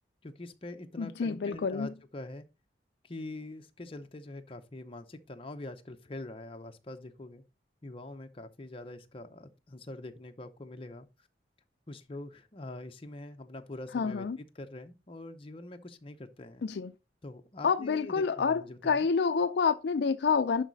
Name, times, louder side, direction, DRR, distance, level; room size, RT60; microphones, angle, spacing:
voice 1, 0.2-2.4 3.0-7.4 7.8-11.1 11.9-16.7 17.2-19.1, left 2 dB, 30° left, 0.7 m, -44 dB
voice 2, 1.0-1.9 13.9-14.4 16.6-16.9 17.6-20.6, left 5 dB, 65° left, 0.4 m, -28 dB
11.0 x 4.1 x 4.0 m
head